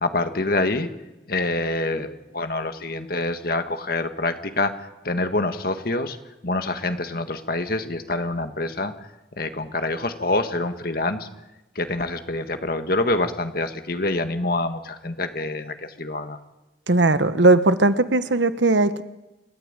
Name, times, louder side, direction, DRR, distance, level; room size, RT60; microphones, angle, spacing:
voice 1, 0.0-0.9 1.3-4.8 5.0-6.2 6.4-8.9 9.4-11.3 11.8-16.4, left 2 dB, 50° left, 8 dB, 1.7 m, -26 dB
voice 2, 16.9-19.0, right 2 dB, 70° right, 12 dB, 1.2 m, -18 dB
29.0 x 14.0 x 9.0 m, 1.0 s
head